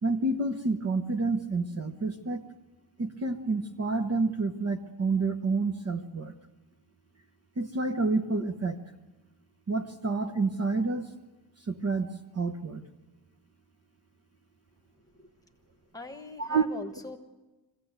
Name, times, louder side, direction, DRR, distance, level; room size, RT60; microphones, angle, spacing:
voice 1, 0.0-2.4 3.0-6.3 7.6-8.8 9.7-11.1 11.7-12.9 16.4-16.7, right 3 dB, 35° right, 6 dB, 1.0 m, -29 dB
voice 2, 15.9-17.2, left 3 dB, 10° left, 4 dB, 1.4 m, -42 dB
23.5 x 16.0 x 8.1 m, 1.1 s
wide cardioid pair, 155°, 45 cm